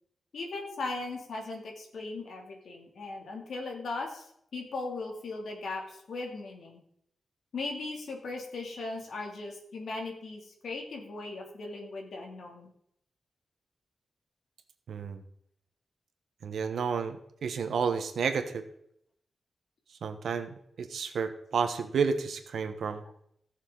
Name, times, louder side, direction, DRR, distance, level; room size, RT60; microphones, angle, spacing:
voice 1, 0.3-4.2 4.5-6.8 7.5-12.7, left 3 dB, 75° left, 1 dB, 2.6 m, -38 dB
voice 2, 14.9-15.2 16.4-18.6 20.0-23.0, right 6 dB, 80° right, 8 dB, 1.1 m, -31 dB
17.5 x 6.6 x 3.9 m, 0.71 s
wide cardioid pair, 115°, 0 cm